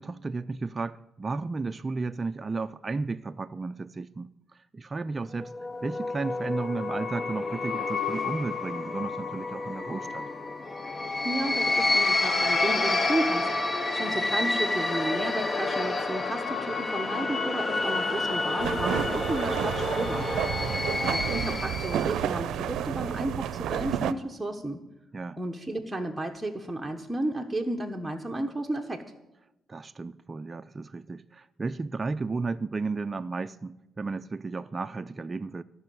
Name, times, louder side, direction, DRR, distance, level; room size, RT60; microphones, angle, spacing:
voice 1, 0.0-4.3 4.7-5.5 5.8-10.3 20.7-21.2 25.1-25.4 29.7-35.6, right 3 dB, 30° right, 0.4 m, -33 dB
sound 1, 5.4-22.2, left 3 dB, 30° left, 0.9 m, -29 dB
voice 2, 11.2-20.3 21.1-24.8 25.4-29.0, right 1 dB, 10° right, 1.1 m, -33 dB
sound 2, 18.6-24.1, right 10 dB, 80° right, 0.5 m, -30 dB
14.5 x 6.3 x 9.1 m
cardioid pair, 90°, 0 cm